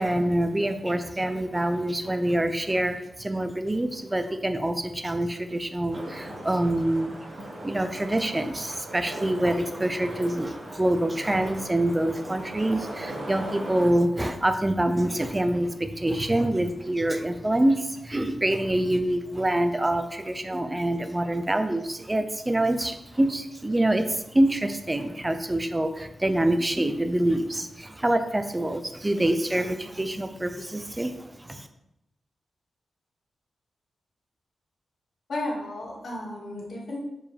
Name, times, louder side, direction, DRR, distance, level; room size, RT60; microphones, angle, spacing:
voice 1, 0.0-7.1 7.6-31.7, right 1 dB, 15° right, 8 dB, 0.5 m, -26 dB
sound 1, 5.9-13.9, right 1 dB, 85° right, 2.0 m, -39 dB
voice 2, 35.3-37.0, left 1 dB, 65° left, -3 dB, 1.9 m, -33 dB
7.2 x 4.9 x 3.4 m, 0.87 s
wide cardioid pair, 120°, 0 cm